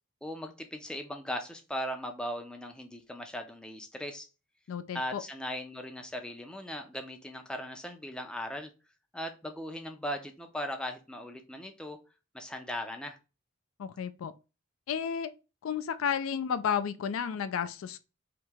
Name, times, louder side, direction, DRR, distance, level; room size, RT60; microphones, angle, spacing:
voice 1, 0.2-4.3 4.9-8.7 9.1-12.0 12.3-13.2, equal, 5° left, 0.4 m, -38 dB
voice 2, 4.7-5.2 13.8-14.3 14.9-15.3 15.6-18.0, left 7 dB, 70° left, 0.3 m, -32 dB
2.9 x 2.7 x 3.4 m
head